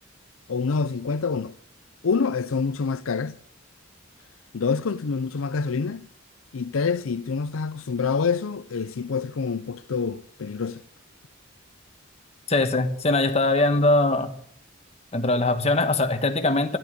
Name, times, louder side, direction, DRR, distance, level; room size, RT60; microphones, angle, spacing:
voice 1, 0.5-1.6 2.0-3.4 4.5-6.1 6.5-10.8, left 5 dB, 80° left, 0.5 m, -26 dB
voice 2, 12.5-14.3 15.1-16.8, left 2 dB, 30° left, 1.5 m, -21 dB
13.5 x 12.0 x 8.2 m
head